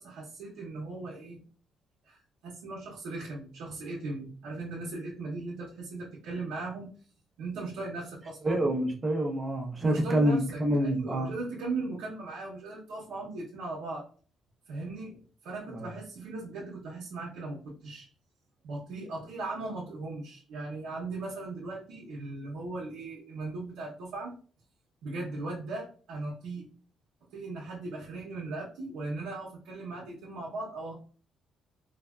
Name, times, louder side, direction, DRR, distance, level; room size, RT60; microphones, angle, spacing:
voice 1, 0.0-1.4 2.0-6.9 7.4-8.6 9.8-14.0 14.7-18.1 18.6-24.3 25.0-26.7 27.3-30.9, right 3 dB, 85° right, -5 dB, 0.8 m, -38 dB
voice 2, 8.4-11.3 15.7-15.9, right 1 dB, 30° right, 1 dB, 0.7 m, -27 dB
3.3 x 2.1 x 2.3 m, 0.42 s
cardioid pair, 90°, 0 cm